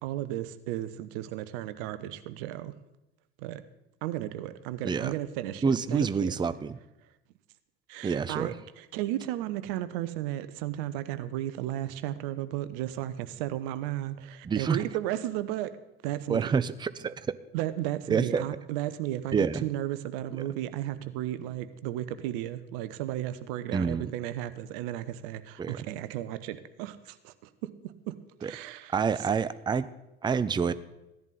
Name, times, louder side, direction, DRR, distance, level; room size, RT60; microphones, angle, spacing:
voice 1, 0.0-2.7 3.4-3.6 4.0-5.6 5.9-6.3 7.9-15.7 16.0-16.5 17.5-28.1 28.4-28.9, right 13 dB, 60° right, 13 dB, 0.9 m, -34 dB
voice 2, 5.6-6.8 8.0-8.5 14.4-14.8 16.3-17.4 18.1-18.5 19.3-19.7 23.7-24.1 25.6-25.8 28.4-28.5 28.9-29.9 30.2-30.7, right 6 dB, 15° right, 15 dB, 0.5 m, -27 dB
15.0 x 10.5 x 4.1 m, 0.94 s
figure-of-eight pair, 65°, 31 cm